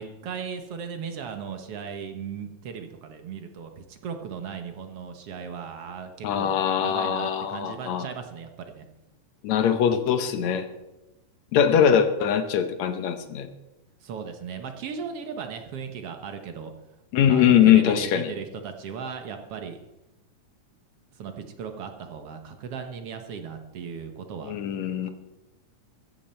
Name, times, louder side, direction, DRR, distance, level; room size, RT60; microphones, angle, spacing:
voice 1, 0.0-8.9 14.0-16.7 17.3-19.8 21.2-24.5 25.0-25.1, right 6 dB, 60° right, 6 dB, 1.8 m, -37 dB
voice 2, 6.2-8.1 9.4-10.7 11.5-13.5 17.1-18.3 24.4-25.1, left 9 dB, 70° left, 9 dB, 2.2 m, -21 dB
15.0 x 14.5 x 4.4 m, 0.98 s
omnidirectional pair, 3.5 m